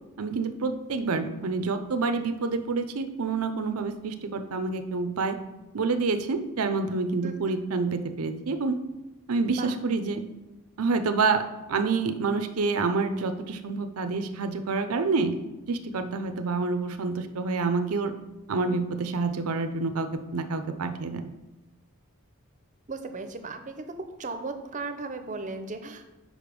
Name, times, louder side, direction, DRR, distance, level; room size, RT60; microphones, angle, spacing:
voice 1, 0.2-5.4 5.7-8.8 9.3-10.2 10.8-15.4 15.7-18.1 18.5-21.3, right 4 dB, 90° right, 9 dB, 0.6 m, -28 dB
voice 2, 7.2-7.5 9.6-9.7 22.9-23.9 24.2-26.1, right 3 dB, 35° right, 7 dB, 0.6 m, -36 dB
5.2 x 5.0 x 5.2 m, 1.0 s
head